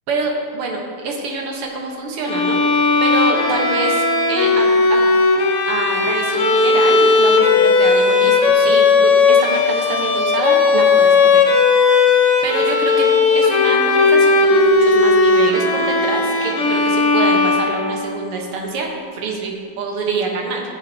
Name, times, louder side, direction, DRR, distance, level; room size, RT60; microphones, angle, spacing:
voice 1, 0.1-2.6 3.0-5.0 5.6-11.4 12.4-20.6, right 3 dB, 80° right, 0 dB, 2.2 m, -25 dB
Bowed string instrument, 2.2-18.2, left 4 dB, 60° left, 0.8 m, -15 dB
18.0 x 7.0 x 2.8 m, 2.1 s
omnidirectional pair, 2.4 m